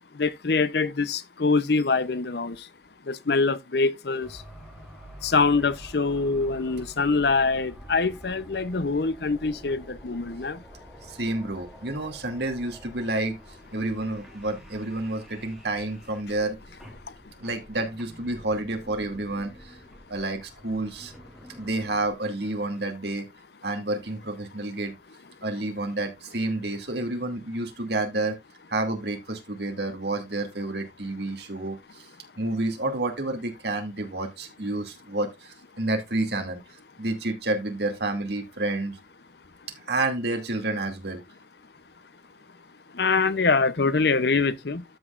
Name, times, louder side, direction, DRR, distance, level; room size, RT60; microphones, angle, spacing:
voice 1, 0.1-2.7 3.1-4.4 5.2-10.6 42.9-44.8, left 4 dB, 60° left, 0.7 m, -24 dB
sound 1, 4.2-22.1, equal, ahead, 3.2 m, -48 dB
voice 2, 11.1-13.4 13.7-16.6 17.4-19.8 20.1-21.1 21.6-23.3 23.6-24.9 25.4-28.4 28.7-32.1 32.4-36.6 37.0-39.0 39.9-41.2, right 2 dB, 65° right, 2.5 m, -29 dB
13.0 x 6.4 x 2.5 m
head